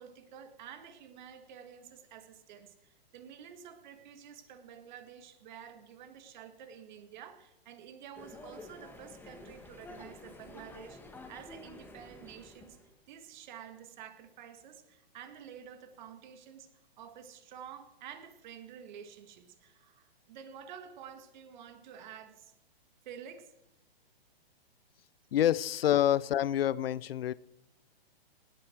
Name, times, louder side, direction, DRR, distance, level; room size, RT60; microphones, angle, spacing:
voice 1, 0.0-12.8 13.1-16.7 17.0-22.5 23.1-23.5, right 8 dB, 50° right, 8 dB, 2.0 m, -50 dB
sound 1, 8.1-12.9, left 2 dB, 5° left, 1.4 m, -50 dB
voice 2, 25.3-27.3, left 11 dB, 70° left, 21 dB, 0.7 m, -27 dB
19.0 x 9.7 x 4.6 m, 0.95 s
hypercardioid pair, 140°, 31 cm